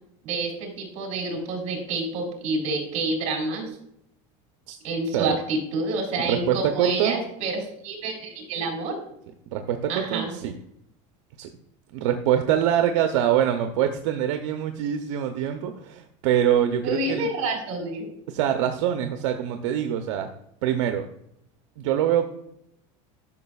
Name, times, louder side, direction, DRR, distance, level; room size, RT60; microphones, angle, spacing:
voice 1, 0.2-3.7 4.8-9.0 9.9-10.3 16.8-18.1, right 2 dB, 45° right, 2 dB, 2.9 m, -28 dB
voice 2, 6.2-7.2 9.5-10.5 11.4-11.5 11.9-17.3 18.3-20.3 20.6-21.1 21.8-22.3, right 10 dB, 75° right, 6 dB, 0.6 m, -24 dB
10.5 x 5.8 x 2.3 m, 0.76 s
supercardioid pair, 150°, 16 cm